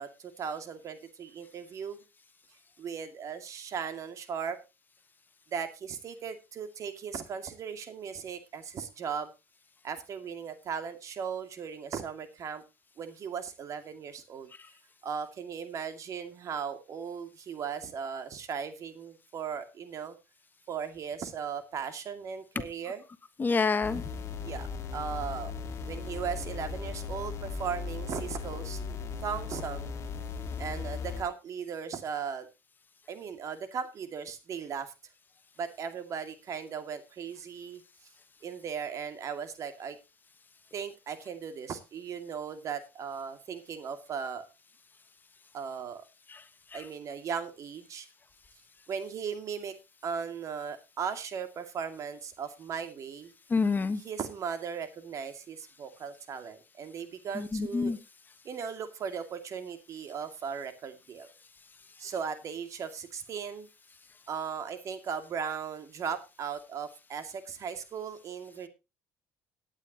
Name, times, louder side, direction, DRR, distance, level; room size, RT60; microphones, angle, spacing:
voice 1, 0.0-2.0 2.8-4.6 5.5-9.3 9.8-12.6 13.0-14.5 15.0-20.2 20.7-23.0 24.4-25.5 25.9-28.8 29.2-29.9 30.6-32.5 33.1-34.9 35.6-37.8 38.4-40.0 40.7-44.5 45.5-46.0 46.7-48.1 48.9-49.7 50.0-53.3 54.0-57.9 58.4-61.3 62.0-63.7 64.3-68.7, right 7 dB, 50° right, 8 dB, 2.3 m, -37 dB
voice 2, 23.4-24.0 46.3-46.4 46.7-46.9 53.5-54.0 57.3-58.0, left 4 dB, 30° left, 11 dB, 1.3 m, -28 dB
sound 1, 23.8-31.2, left 5 dB, 45° left, 2.2 m, -37 dB
18.0 x 9.7 x 2.9 m, 0.27 s
supercardioid pair, 80°, 7 cm